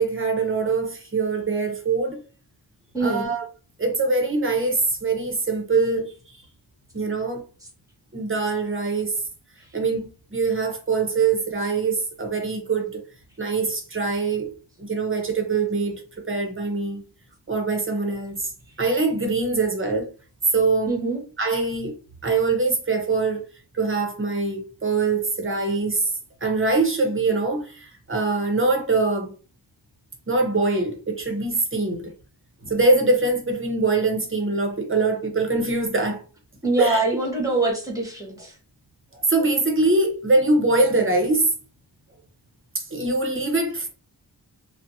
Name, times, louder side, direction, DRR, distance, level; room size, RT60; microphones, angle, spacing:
voice 1, 0.0-2.2 3.0-3.4 3.8-6.4 6.9-7.4 8.1-9.2 9.7-13.0 13.4-14.5 14.8-16.0 16.3-17.0 17.5-18.5 18.8-20.1 20.5-21.0 21.4-21.9 22.2-23.4 23.7-26.1 26.4-29.3 30.3-32.1 32.6-36.2 36.8-37.0 39.1-41.5 42.7-43.9, right 3 dB, 30° right, 0.7 m, -23 dB
voice 2, 2.9-3.2 20.9-21.2 36.6-38.5, right 2 dB, 10° right, 1.0 m, -24 dB
2.6 x 2.0 x 2.6 m
wide cardioid pair, 85°, 42 cm